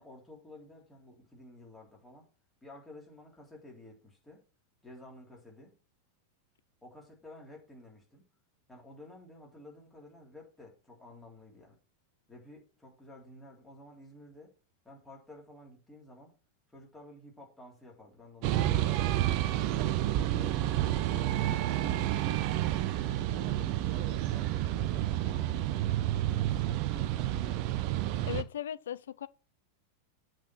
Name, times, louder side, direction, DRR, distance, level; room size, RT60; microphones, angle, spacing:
voice 1, 0.0-2.3 2.6-4.4 4.8-5.8 6.8-8.2 8.7-11.8 12.3-14.5 14.8-16.3 16.7-19.6 19.9-21.0 21.4-22.3 23.2-25.6 26.0-27.8, left 2 dB, 10° left, 3.6 m, -52 dB
sound 1, 18.4-28.4, right 13 dB, 45° right, 0.6 m, -30 dB
voice 2, 28.2-29.3, left 10 dB, 60° left, 0.4 m, -37 dB
8.0 x 4.6 x 6.1 m
figure-of-eight pair, 90°, 0 cm